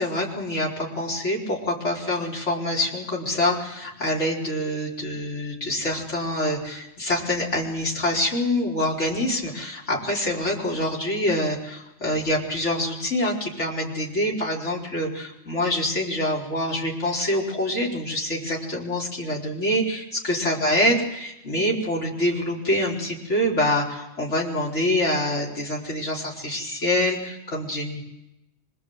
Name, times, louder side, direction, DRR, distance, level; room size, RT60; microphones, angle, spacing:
voice 1, 0.0-28.1, left 1 dB, 70° left, -4 dB, 4.5 m, -25 dB
26.0 x 24.0 x 7.8 m, 0.89 s
omnidirectional pair, 1.2 m